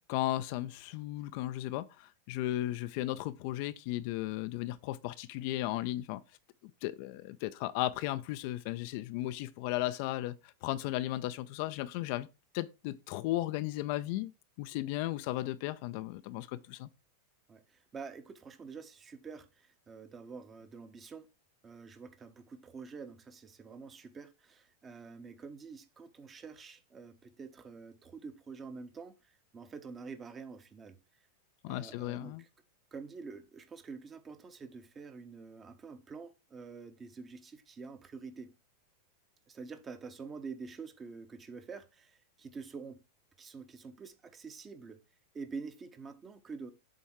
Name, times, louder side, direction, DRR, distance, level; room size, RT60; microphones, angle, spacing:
voice 1, 0.1-6.2 6.8-12.3 12.5-14.3 14.6-16.9 31.6-32.4, left 15 dB, 45° left, 0.4 m, -35 dB
voice 2, 17.5-21.3 21.6-31.0 31.7-32.5 32.9-38.5 39.5-43.0 43.4-45.0 45.3-46.7, right 4 dB, 20° right, 0.8 m, -47 dB
7.4 x 3.5 x 4.5 m
figure-of-eight pair, 90°, 0 cm